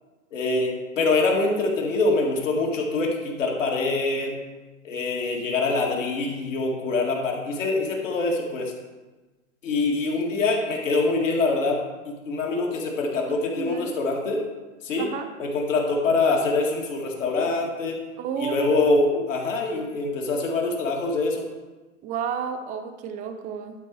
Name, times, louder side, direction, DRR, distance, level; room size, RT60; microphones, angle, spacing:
voice 1, 0.3-4.3 4.8-8.7 9.6-14.5 14.8-15.1 15.4-18.0 18.4-21.4, left 3 dB, 70° left, -1 dB, 2.1 m, -24 dB
voice 2, 13.6-13.9 15.0-15.3 18.2-18.9 22.0-23.7, right 7 dB, 20° right, 7 dB, 0.5 m, -31 dB
11.5 x 4.1 x 4.7 m, 1.2 s
hypercardioid pair, 120°, 40 cm